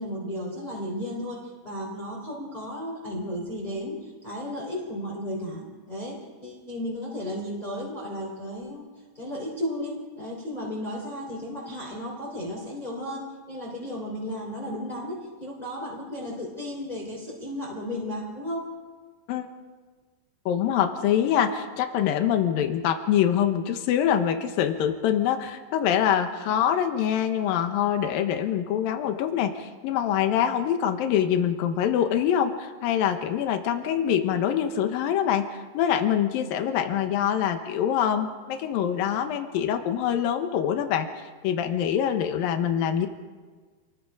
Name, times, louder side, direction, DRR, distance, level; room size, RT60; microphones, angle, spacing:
voice 1, 0.0-8.9 9.1-18.7, left 1 dB, 10° left, -3 dB, 3.3 m, -34 dB
voice 2, 20.5-43.1, left 9 dB, 80° left, 6 dB, 3.0 m, -25 dB
28.0 x 21.0 x 5.0 m, 1.4 s
omnidirectional pair, 4.2 m